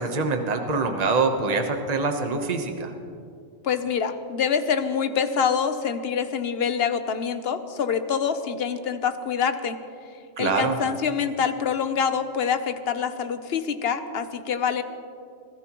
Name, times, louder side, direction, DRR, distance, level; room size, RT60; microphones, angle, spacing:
voice 1, 0.0-2.9 10.4-10.8, right 4 dB, 35° right, 5 dB, 1.1 m, -24 dB
voice 2, 3.6-9.8 10.4-14.8, left 7 dB, 55° left, 10 dB, 1.0 m, -25 dB
25.0 x 16.5 x 3.1 m, 2.4 s
omnidirectional pair, 1.3 m